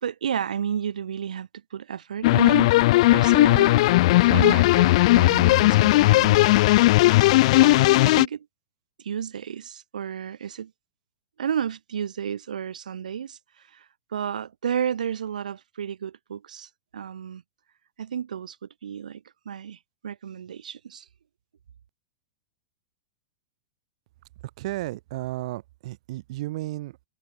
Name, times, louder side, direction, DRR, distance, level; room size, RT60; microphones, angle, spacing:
voice 1, 0.0-6.6 7.6-8.5 9.0-10.7 11.4-13.4 13.7-13.9 14.1-17.4 18.0-21.1, right 8 dB, 90° right, 3.6 m, -32 dB
sound 1, 2.2-8.3, left 19 dB, 55° left, 0.7 m, -17 dB
voice 2, 24.6-27.1, right 17 dB, 60° right, 6.1 m, -33 dB
hypercardioid pair, 135°, 4 cm